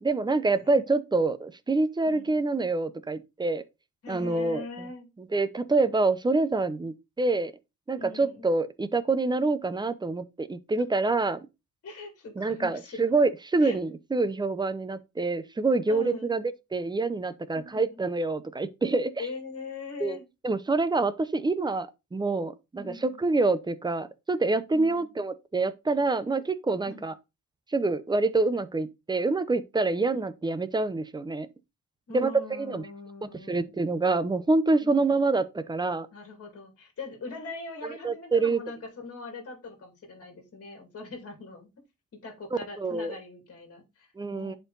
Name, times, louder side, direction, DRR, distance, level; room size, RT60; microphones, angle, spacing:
voice 1, 0.0-3.6 4.1-4.9 5.2-7.5 7.9-11.5 12.4-16.4 16.7-19.3 20.0-20.2 20.4-27.1 27.7-31.5 32.1-32.8 33.2-36.1 37.8-38.6 42.5-43.2 44.2-44.6, right 3 dB, 15° right, 0.6 m, -26 dB
voice 2, 2.0-2.4 4.0-5.1 8.0-8.5 11.8-13.0 13.6-13.8 15.9-16.3 17.5-18.0 19.2-20.3 22.8-23.2 24.7-25.1 26.8-27.1 32.1-33.7 34.8-35.1 36.1-41.7 42.2-44.6, left 3 dB, 45° left, 2.4 m, -41 dB
10.5 x 4.6 x 3.8 m
wide cardioid pair, 180°, 34 cm